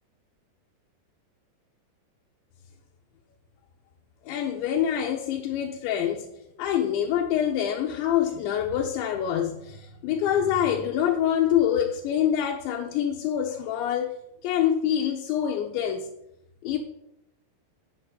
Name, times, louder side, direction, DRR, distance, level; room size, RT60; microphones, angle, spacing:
voice 1, 4.3-6.3 6.6-14.2 14.4-16.1 16.6-16.8, left 9 dB, 75° left, 3.1 m, -25 dB
9.2 x 7.8 x 8.1 m
omnidirectional pair, 5.6 m